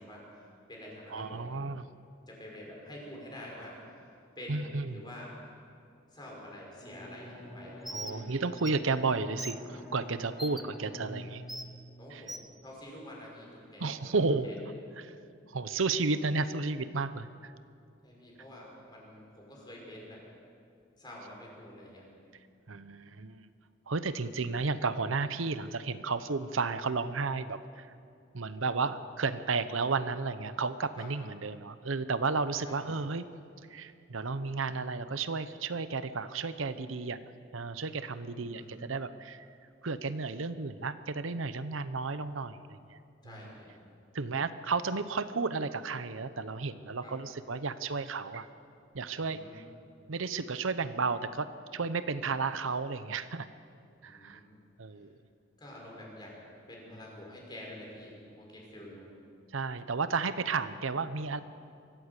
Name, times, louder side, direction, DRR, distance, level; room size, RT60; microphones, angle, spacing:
voice 1, 0.0-1.5 2.3-4.1 4.4-5.4 6.1-8.3 12.0-14.1 14.4-14.5 18.0-20.2 21.0-22.0 31.0-31.1 32.6-33.0 38.3-38.7 43.2-43.7 47.0-47.1 49.1-49.5 54.0-54.4 54.9-55.0 55.6-56.4 56.7-59.1, left 1 dB, 20° left, -2 dB, 5.6 m, -48 dB
voice 2, 1.1-1.8 4.5-5.0 7.9-11.4 12.1-12.3 13.8-14.5 15.0-15.1 15.5-17.5 22.7-23.5 23.9-27.9 28.3-33.3 33.7-37.2 37.5-39.5 39.8-43.0 44.1-48.5 48.9-49.6 50.1-53.5 54.0-54.4 54.8-55.1 59.5-61.4, right 4 dB, 85° right, 12 dB, 0.8 m, -33 dB
Bowed string instrument, 6.8-12.5, equal, 35° left, 5.7 m, -47 dB
Bird, 7.8-8.2 8.6-8.7 9.4-9.6 10.4-10.6 11.5-11.7 12.3-12.5, equal, ahead, 0.6 m, -40 dB
24.0 x 15.0 x 8.2 m, 2.4 s
head